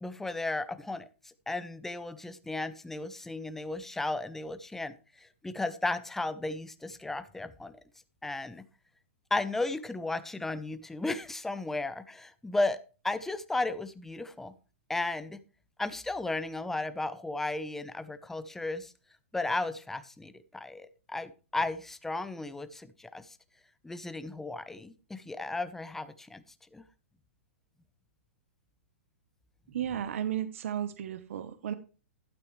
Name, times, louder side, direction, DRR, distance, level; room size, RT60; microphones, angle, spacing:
voice 1, 0.0-7.8 8.2-8.6 9.3-14.5 14.9-15.4 15.8-18.9 19.3-23.4 23.8-26.4 26.7-26.8, left 2 dB, 5° left, 13 dB, 0.7 m, -35 dB
voice 2, 29.7-31.7, right 10 dB, 70° right, 13 dB, 0.9 m, -34 dB
12.0 x 8.7 x 3.1 m, 0.34 s
hypercardioid pair, 140°, 7 cm